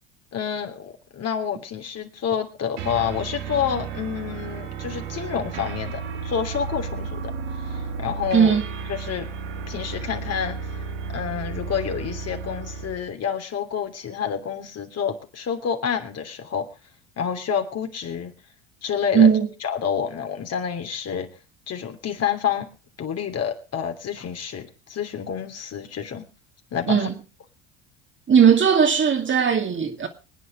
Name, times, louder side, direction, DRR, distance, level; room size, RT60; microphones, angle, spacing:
voice 1, 0.3-8.6 8.9-9.3 9.7-10.8 11.1-16.7 17.2-18.3 18.8-19.3 19.6-21.3 21.7-22.7 23.0-26.3 26.7-27.1, left 7 dB, 40° left, 3.1 m, -28 dB
sound 1, 2.8-13.1, right 5 dB, 75° right, 2.7 m, -33 dB
voice 2, 19.1-19.5 26.9-27.1 28.3-30.1, right 7 dB, 30° right, 2.5 m, -17 dB
25.0 x 9.5 x 3.8 m
hypercardioid pair, 75°, 37 cm